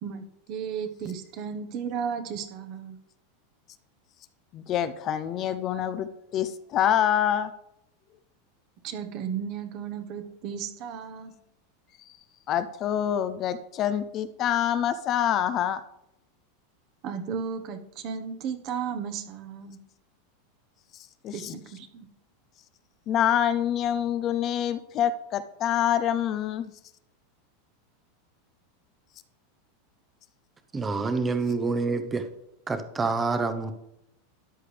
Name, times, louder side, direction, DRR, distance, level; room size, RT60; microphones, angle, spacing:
voice 1, 0.0-3.0 8.8-11.3 17.0-19.8 21.3-22.1, right 7 dB, 40° right, 7 dB, 1.1 m, -34 dB
voice 2, 4.5-7.5 12.5-15.8 21.2-21.5 23.1-26.7, left 10 dB, 30° left, 12 dB, 0.5 m, -26 dB
voice 3, 30.7-32.2 32.7-33.7, right 4 dB, 15° right, 9 dB, 0.8 m, -27 dB
13.5 x 9.8 x 3.4 m, 0.83 s
supercardioid pair, 155°, 0 cm